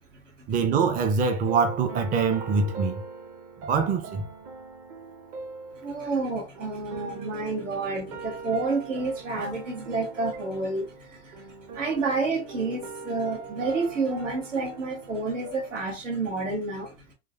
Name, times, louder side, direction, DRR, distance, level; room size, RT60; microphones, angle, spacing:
voice 1, 0.5-3.0 3.6-4.3, right 5 dB, 25° right, 0.5 m, -24 dB
Chasing Clouds, 1.0-15.8, right 4 dB, 45° right, 1.0 m, -41 dB
voice 2, 5.8-11.4 11.7-16.9, right 3 dB, 85° right, 1.5 m, -29 dB
3.7 x 2.4 x 2.3 m
hypercardioid pair, 90°, 36 cm